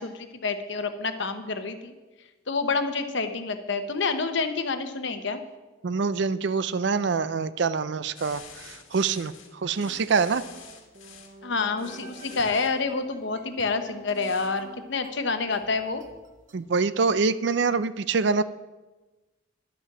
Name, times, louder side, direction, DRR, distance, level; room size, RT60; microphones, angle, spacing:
voice 1, 0.0-1.9 2.5-5.4 11.4-16.0, left 4 dB, 60° left, 8 dB, 0.9 m, -28 dB
voice 2, 5.8-10.4 16.5-18.4, right 4 dB, 60° right, 14 dB, 0.4 m, -25 dB
sound 1, 8.1-11.3 11.8-12.7 14.1-14.5, left 7 dB, 85° left, 1.6 m, -48 dB
sound 2, 9.8-16.6, right 2 dB, 40° right, 1.0 m, -48 dB
11.0 x 8.3 x 6.0 m, 1.2 s
head